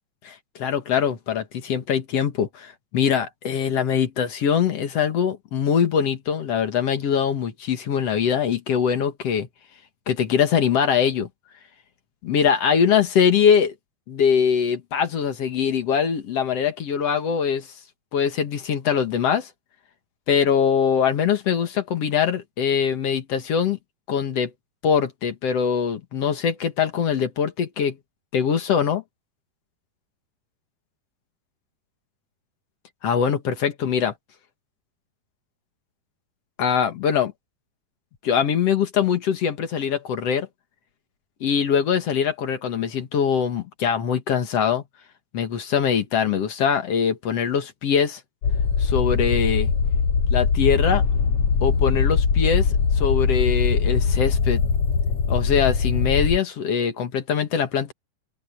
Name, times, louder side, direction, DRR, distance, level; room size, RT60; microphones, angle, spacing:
voice 1, 0.2-9.5 10.1-11.3 12.2-13.7 14.1-17.7 18.1-19.5 20.3-23.8 24.1-24.5 24.8-28.0 28.3-29.0 33.0-34.1 36.6-37.3 38.2-40.5 41.4-44.8 45.3-48.2 48.8-49.7 50.3-51.0 51.6-54.6 55.3-57.9, left 7 dB, 55° left, 2.0 m, -22 dB
sound 1, 48.4-56.4, left 5 dB, 70° left, 1.3 m, -21 dB
open air
omnidirectional pair, 4.6 m